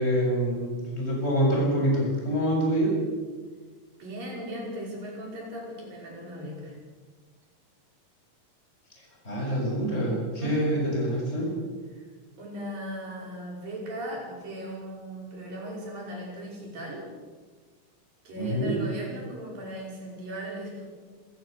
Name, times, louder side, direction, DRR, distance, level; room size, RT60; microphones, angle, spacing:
voice 1, 0.0-3.0 9.2-11.5 18.4-18.8, equal, 15° left, -3 dB, 7.5 m, -26 dB
voice 2, 4.0-6.8 10.4-10.8 11.9-12.1 12.4-17.1 18.3-20.9, right 1 dB, 85° right, -1 dB, 7.2 m, -38 dB
27.0 x 16.5 x 6.6 m, 1.4 s
omnidirectional pair, 3.9 m